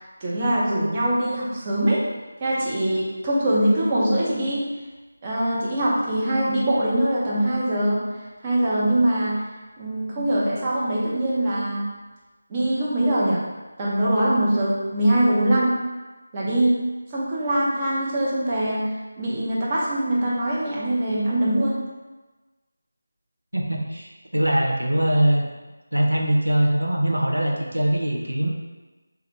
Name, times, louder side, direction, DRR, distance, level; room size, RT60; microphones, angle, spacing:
voice 1, 0.2-2.0 2.4-4.7 5.2-8.0 8.4-9.3 9.8-11.9 12.5-13.4 13.8-15.7 16.3-16.8 17.1-18.9 19.2-21.8, right 1 dB, 25° right, -7 dB, 0.7 m, -22 dB
voice 2, 23.5-25.5 25.9-28.5, right 1 dB, 85° right, 0 dB, 0.6 m, -22 dB
3.2 x 2.4 x 3.1 m, 1.2 s
figure-of-eight pair, 165°, 0 cm